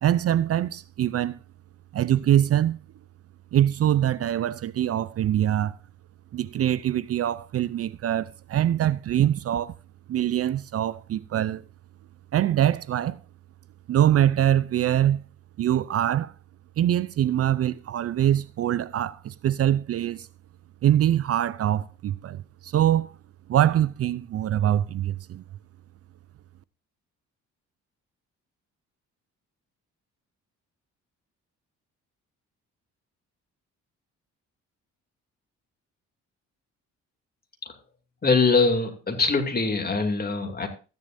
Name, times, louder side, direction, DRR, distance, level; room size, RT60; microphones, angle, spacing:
voice 1, 0.0-1.4 1.9-2.8 3.5-5.8 6.3-9.7 10.1-11.6 12.3-13.2 13.9-15.2 15.6-16.3 16.8-20.3 20.8-23.2 23.5-25.4, right 11 dB, 50° right, 0.5 m, -23 dB
voice 2, 38.2-40.7, left 4 dB, 30° left, 2.7 m, -23 dB
14.5 x 10.5 x 2.6 m
cardioid pair, 90°, 30 cm